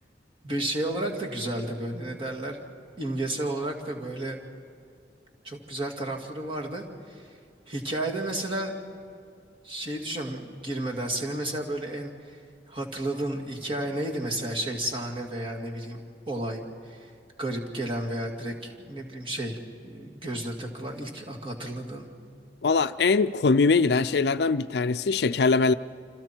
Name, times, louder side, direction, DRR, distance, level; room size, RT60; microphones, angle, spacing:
voice 1, 0.4-2.6 3.0-4.4 5.4-7.3 7.7-8.7 9.6-12.4 12.7-16.0 16.3-17.1 17.4-22.1, right 1 dB, 30° right, 2.3 m, -32 dB
voice 2, 22.6-25.7, left 4 dB, 60° left, 0.4 m, -22 dB
29.0 x 26.0 x 4.5 m
head